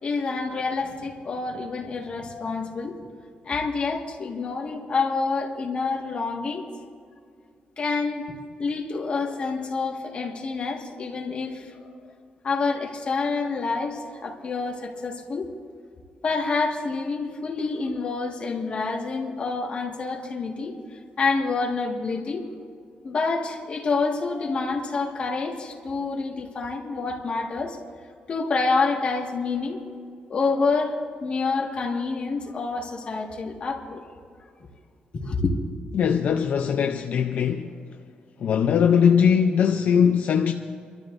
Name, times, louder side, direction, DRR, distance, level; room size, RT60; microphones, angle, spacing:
voice 1, 0.0-3.0 3.4-6.6 7.8-8.3 8.6-11.8 12.4-15.5 16.2-20.7 21.2-22.4 23.0-27.8 28.3-29.8 30.3-34.0 35.1-35.5, left 4 dB, 40° left, 1.7 m, -27 dB
voice 2, 35.9-37.7 38.4-40.5, left 7 dB, 60° left, 0.6 m, -20 dB
29.0 x 13.0 x 2.6 m
wide cardioid pair, 175°, 3 cm